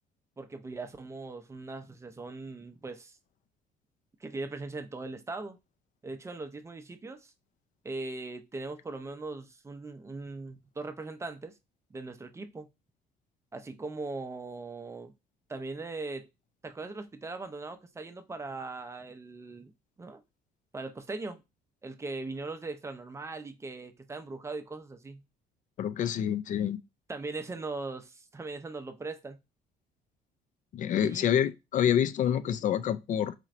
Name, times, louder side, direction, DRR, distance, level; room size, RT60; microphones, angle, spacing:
voice 1, 0.4-3.2 4.2-5.6 6.0-7.3 7.8-11.6 11.9-12.7 13.5-15.1 15.5-16.3 16.6-19.7 20.0-20.2 20.7-21.4 21.8-25.2 27.1-29.4 31.0-31.3, right 3 dB, 15° right, 0.5 m, -40 dB
voice 2, 25.8-26.8 30.7-33.3, left 9 dB, 50° left, 0.4 m, -27 dB
4.3 x 2.9 x 2.5 m
cardioid pair, 110°, 17 cm